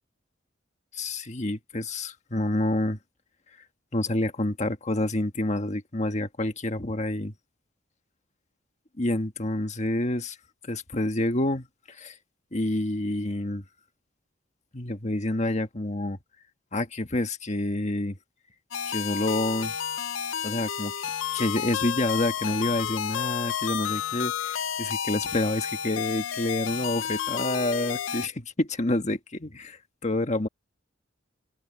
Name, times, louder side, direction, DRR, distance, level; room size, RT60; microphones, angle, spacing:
voice 1, 0.9-3.0 3.9-7.3 9.0-10.4 10.6-12.1 12.5-13.6 14.7-16.2 16.7-18.2 18.9-19.7 20.4-30.5, left 1 dB, 35° left, 1.6 m, -28 dB
sound 1, 18.7-28.3, left 8 dB, 80° left, 0.6 m, -31 dB
head